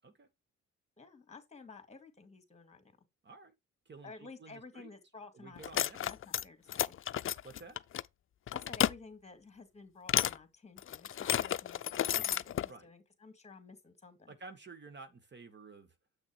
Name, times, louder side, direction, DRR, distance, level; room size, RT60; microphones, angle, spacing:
voice 1, 1.0-2.9 4.0-6.9 8.5-14.3, left 4 dB, 20° left, 2.8 m, -53 dB
voice 2, 4.4-4.9 5.3-6.0 7.4-7.8 12.7-12.9 14.3-15.9, right 3 dB, 35° right, 1.8 m, -51 dB
sound 1, 5.6-6.4 6.7-8.0 8.5-8.9 10.1-10.4 10.8-12.7, left 10 dB, 45° left, 0.5 m, -32 dB
8.3 x 6.1 x 4.5 m
cardioid pair, 90°, 30 cm